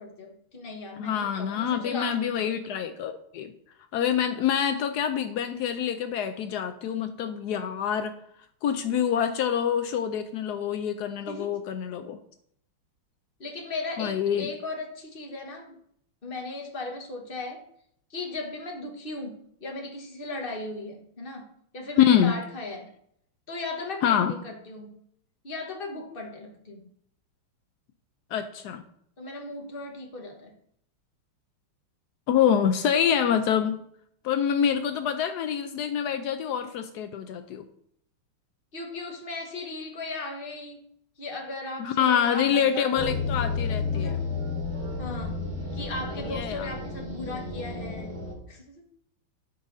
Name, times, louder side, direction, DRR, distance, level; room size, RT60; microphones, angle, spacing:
voice 1, 0.0-2.6 11.3-11.6 13.4-15.8 16.2-17.6 18.1-21.5 21.7-22.9 23.5-24.9 25.4-26.8 29.2-30.5 38.7-40.9 41.2-43.4 43.9-44.2 45.0-45.4 45.7-48.2 48.5-48.8, left 2 dB, 30° left, 2 dB, 1.2 m, -37 dB
voice 2, 1.0-3.5 3.9-8.1 8.6-12.2 14.0-14.5 22.0-22.3 24.0-24.3 28.3-28.8 32.3-33.8 34.2-37.6 41.8-44.1 46.3-46.7, left 8 dB, 85° left, 8 dB, 0.8 m, -26 dB
sound 1, 43.0-48.3, left 4 dB, 75° right, 3.1 m, -32 dB
13.5 x 5.5 x 2.7 m, 0.69 s
omnidirectional pair, 2.3 m